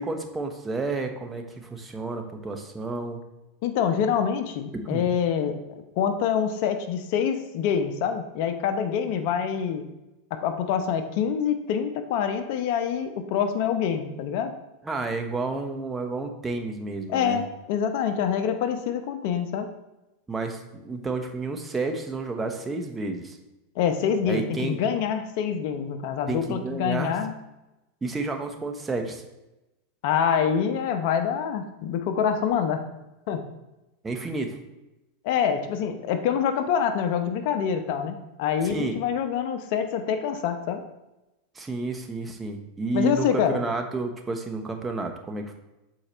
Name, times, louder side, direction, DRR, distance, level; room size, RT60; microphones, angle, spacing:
voice 1, 0.0-3.2 4.7-5.1 14.8-17.4 20.3-23.4 24.2-24.8 26.3-27.2 28.0-29.2 34.0-34.6 38.6-39.0 41.5-45.6, right 3 dB, 15° right, 4 dB, 1.1 m, -31 dB
voice 2, 3.6-5.6 6.0-9.8 10.3-14.5 17.1-19.7 23.8-27.3 30.0-32.8 33.3-33.4 35.2-40.8 42.9-43.6, left 8 dB, 60° left, 7 dB, 0.9 m, -26 dB
6.7 x 4.5 x 4.4 m, 0.97 s
hypercardioid pair, 105°, 0 cm